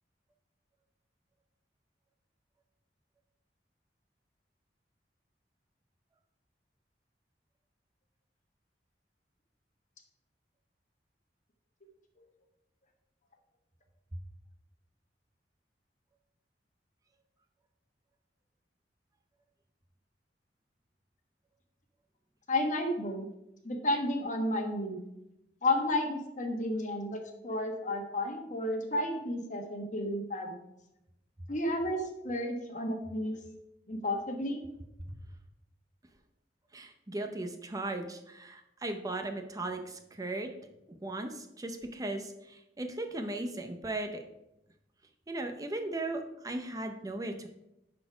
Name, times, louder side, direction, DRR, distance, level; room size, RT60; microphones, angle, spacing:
voice 1, 22.5-23.3 23.6-25.0 25.6-30.5 31.5-33.4 33.9-34.6, left 1 dB, 45° left, 4 dB, 1.3 m, -32 dB
voice 2, 36.7-40.5 40.9-44.2 45.3-47.5, right 2 dB, 20° right, 5 dB, 0.6 m, -37 dB
10.5 x 4.2 x 5.0 m, 0.88 s
head